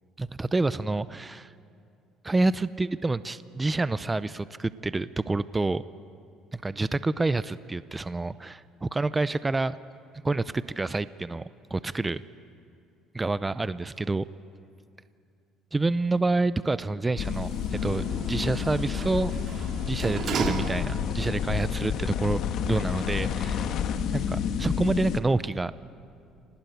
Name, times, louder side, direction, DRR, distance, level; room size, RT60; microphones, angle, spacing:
voice 1, 0.2-1.5 2.2-5.8 6.5-9.7 10.2-12.2 13.1-14.2 15.7-19.3 19.8-22.4 22.7-23.7 24.1-25.7, right 2 dB, 15° right, 15 dB, 0.6 m, -28 dB
Sliding door, 17.1-21.3 21.7-21.8, right 5 dB, 50° right, 2.6 m, -35 dB
sound 1, 17.2-25.2, left 8 dB, 65° left, 1.4 m, -30 dB
26.0 x 19.0 x 9.3 m, 2.4 s
cardioid pair, 95°, 0 cm